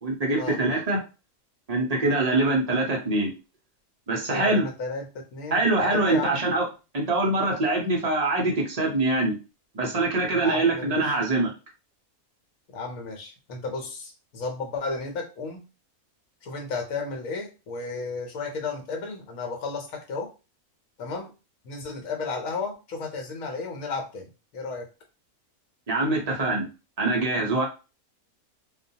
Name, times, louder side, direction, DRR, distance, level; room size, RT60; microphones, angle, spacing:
voice 1, 0.0-1.0 1.7-3.3 4.1-4.7 5.5-6.7 6.9-9.4 9.7-11.5 25.9-26.7 27.0-27.6, right 2 dB, 40° right, -1 dB, 0.6 m, -24 dB
voice 2, 4.3-5.6 5.9-6.4 10.4-11.1 12.7-15.6 16.4-20.3 21.0-21.3 21.6-24.9, left 4 dB, 70° left, 3 dB, 1.2 m, -33 dB
2.6 x 2.2 x 2.7 m, 0.30 s
omnidirectional pair, 1.5 m